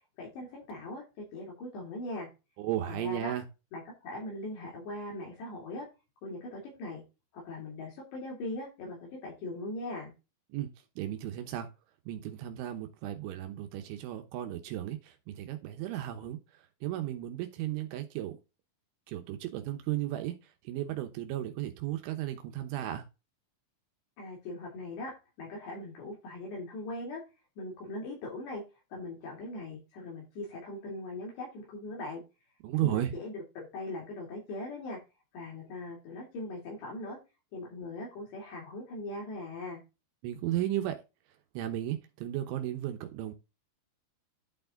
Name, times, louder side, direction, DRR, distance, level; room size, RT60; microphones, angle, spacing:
voice 1, 0.2-2.3 2.9-3.3 3.7-5.9 6.2-7.0 7.3-10.1 24.2-25.1 25.4-27.2 27.6-28.6 28.9-32.2 32.8-35.0 35.3-37.2 37.5-39.8, left 2 dB, 65° left, -2 dB, 5.0 m, -40 dB
voice 2, 2.6-3.4 10.5-10.7 11.0-11.7 12.1-18.4 19.1-23.1 32.6-33.1 40.2-41.0 41.5-43.3, right 13 dB, 80° right, 6 dB, 3.4 m, -34 dB
12.0 x 4.8 x 3.8 m, 0.27 s
omnidirectional pair, 5.4 m